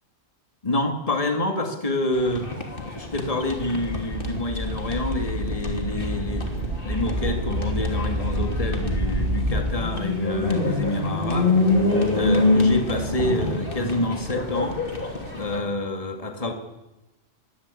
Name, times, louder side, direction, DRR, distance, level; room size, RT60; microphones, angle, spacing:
voice 1, 0.6-2.5 2.9-6.5 6.8-11.5 12.1-14.8 15.4-16.5, left 1 dB, 30° left, 5 dB, 2.4 m, -27 dB
sound 1, 2.1-15.6, left 2 dB, 45° left, 3.2 m, -26 dB
sound 2, 3.4-9.7, equal, 50° right, 6.0 m, -28 dB
22.5 x 17.0 x 8.5 m, 0.99 s
omnidirectional pair, 1.3 m